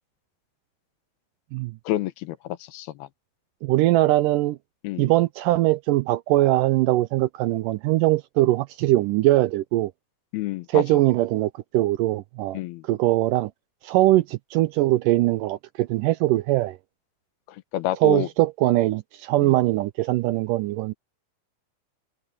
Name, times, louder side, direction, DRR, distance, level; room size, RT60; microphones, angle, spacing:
voice 1, 1.9-3.1 4.8-5.1 10.3-10.8 12.5-12.8 17.7-18.3 19.4-19.5, left 14 dB, 90° left, 3.0 m, -28 dB
voice 2, 3.6-4.6 5.0-9.9 10.7-13.5 13.8-16.8 18.0-20.9, right 17 dB, 80° right, 1.9 m, -21 dB
omnidirectional pair, 4.3 m